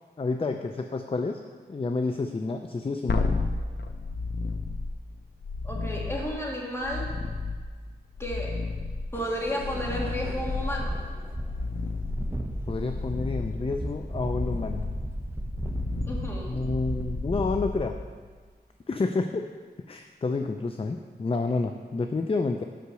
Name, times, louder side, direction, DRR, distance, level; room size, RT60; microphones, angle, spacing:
voice 1, 0.2-1.4 1.7-3.2 12.7-14.9 16.5-18.0 18.9-19.5 19.9-22.6, left 3 dB, 35° left, 6 dB, 0.4 m, -29 dB
sound 1, 3.1-18.4 21.5-21.6, left 3 dB, 85° left, 0.6 m, -33 dB
voice 2, 5.6-7.1 8.2-8.7 9.1-11.0 16.1-16.6, equal, 15° left, -3 dB, 2.1 m, -32 dB
sound 2, 9.1-17.9, right 1 dB, 15° right, 0.8 m, -35 dB
8.3 x 5.7 x 6.3 m, 1.5 s
wide cardioid pair, 70°, 17 cm